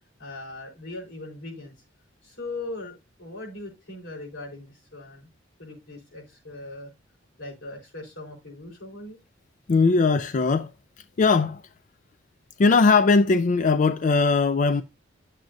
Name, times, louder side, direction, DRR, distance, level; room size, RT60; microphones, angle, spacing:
voice 1, 0.2-1.7 2.2-5.3 5.6-6.9 7.4-9.2, left 2 dB, 90° left, 4.3 m, -39 dB
voice 2, 9.7-10.7 11.2-11.6 12.6-14.8, left 4 dB, 40° left, 0.4 m, -19 dB
10.5 x 7.5 x 2.6 m
head